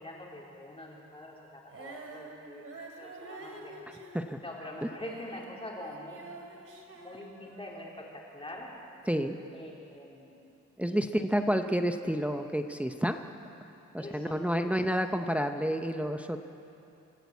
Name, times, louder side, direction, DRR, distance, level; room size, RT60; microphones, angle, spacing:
voice 1, 0.0-3.7 4.4-6.2 6.9-8.7 9.5-10.3 10.9-11.3 14.0-14.7, left 1 dB, 20° left, -3 dB, 3.7 m, -44 dB
Female singing, 1.7-5.5 5.8-7.9, right 3 dB, 50° right, 2.9 m, -48 dB
voice 2, 3.9-4.4 4.8-4.9 9.0-9.4 10.8-13.2 13.9-16.4, equal, 5° right, 6 dB, 0.7 m, -30 dB
25.5 x 14.0 x 8.3 m, 2.8 s
wide cardioid pair, 140°, 30 cm